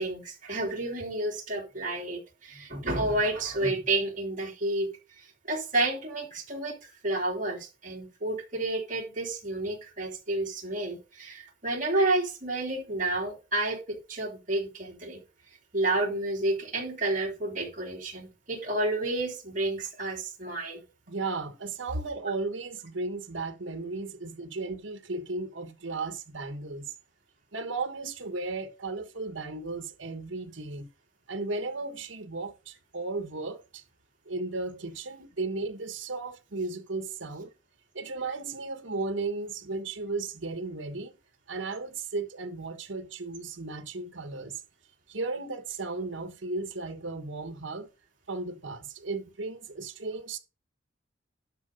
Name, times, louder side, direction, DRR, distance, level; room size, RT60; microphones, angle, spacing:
voice 1, 0.0-4.9 5.2-15.2 15.7-20.8, right 2 dB, 45° right, 3.2 m, -30 dB
voice 2, 21.1-26.9 27.5-30.9 31.3-33.8 34.2-37.5 37.9-41.2 41.5-44.6 45.1-47.9 48.3-50.4, right 3 dB, 80° right, 1.3 m, -35 dB
12.0 x 4.9 x 5.2 m
head